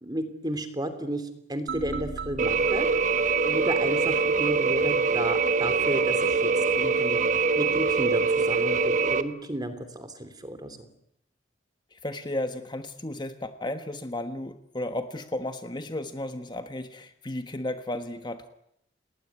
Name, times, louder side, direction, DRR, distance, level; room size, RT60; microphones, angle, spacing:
voice 1, 0.0-2.9 3.4-7.2 7.5-10.9, right 1 dB, 20° right, 10 dB, 3.2 m, -33 dB
sound 1, 1.7-4.7, right 4 dB, 65° right, 1.7 m, -39 dB
sound 2, 2.4-9.2, right 4 dB, 45° right, 1.4 m, -24 dB
voice 2, 11.9-18.5, left 1 dB, 25° left, 8 dB, 1.3 m, -34 dB
29.0 x 19.5 x 9.5 m, 0.78 s
head